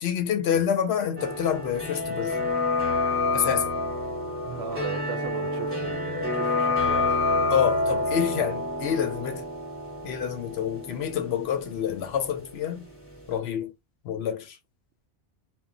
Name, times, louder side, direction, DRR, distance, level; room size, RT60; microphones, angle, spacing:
voice 1, 0.0-2.5 3.3-3.7 7.5-9.5 10.0-12.9 13.3-13.7 14.0-14.6, left 8 dB, 70° left, 0.8 m, -27 dB
sound 1, 1.2-12.9 13.1-13.2, left 2 dB, 10° left, 0.9 m, -28 dB
voice 2, 4.4-7.2, right 6 dB, 65° right, 0.8 m, -37 dB
2.2 x 2.0 x 3.6 m
omnidirectional pair, 1.2 m